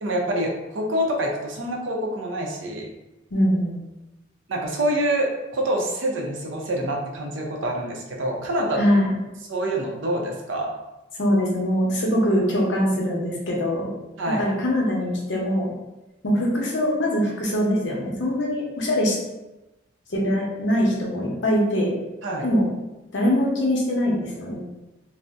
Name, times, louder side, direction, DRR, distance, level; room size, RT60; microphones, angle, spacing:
voice 1, 0.0-2.9 4.5-8.8 9.5-10.7 14.2-14.4 22.2-22.5, right 1 dB, 75° right, 0 dB, 0.6 m, -26 dB
voice 2, 3.3-3.7 8.8-9.1 11.1-13.9 14.4-15.7 16.2-19.2 20.1-21.9 22.4-22.7 23.1-24.6, equal, 65° left, -2 dB, 0.7 m, -22 dB
2.6 x 2.0 x 3.3 m, 1.0 s
head